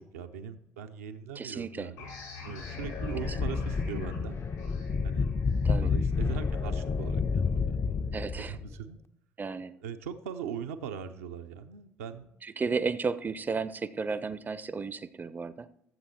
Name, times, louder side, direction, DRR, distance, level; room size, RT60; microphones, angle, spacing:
voice 1, 0.0-2.1 2.4-4.4 5.0-5.3 5.8-8.0 8.4-9.0 9.8-12.3, right 8 dB, 75° right, 7 dB, 0.7 m, -40 dB
voice 2, 1.4-1.9 3.3-3.4 5.6-5.9 8.1-8.6 9.4-9.7 12.4-15.7, right 4 dB, 25° right, 15 dB, 0.5 m, -33 dB
sound 1, 2.0-7.3, left 4 dB, 80° left, 5.4 m, -46 dB
sound 2, 2.6-8.7, left 5 dB, 30° left, 0.5 m, -30 dB
13.5 x 7.6 x 4.3 m, 0.76 s
figure-of-eight pair, 55°, 8 cm